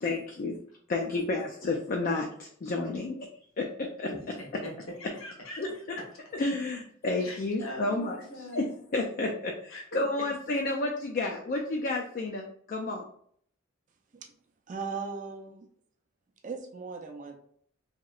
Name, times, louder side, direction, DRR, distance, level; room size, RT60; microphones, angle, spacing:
voice 1, 0.0-0.6 0.9-3.3 3.6-4.1 5.6-5.7 6.3-13.0, left 2 dB, 40° left, 1 dB, 0.3 m, -31 dB
voice 2, 4.1-4.7 5.0-5.6 7.2-8.7 9.7-9.8 10.2-10.3, left 1 dB, 80° left, -2 dB, 1.1 m, -42 dB
voice 3, 14.7-15.7 16.4-17.4, right 5 dB, 35° right, 3 dB, 0.4 m, -38 dB
3.0 x 2.8 x 2.3 m, 0.63 s
head